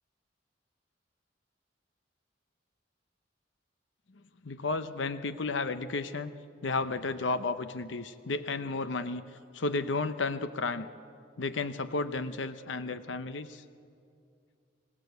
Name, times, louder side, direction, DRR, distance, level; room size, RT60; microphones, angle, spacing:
voice 1, 4.4-6.3 6.6-9.2 9.5-10.9 11.4-13.6, left 3 dB, 80° left, 11 dB, 0.8 m, -32 dB
29.5 x 17.0 x 8.1 m, 2.4 s
head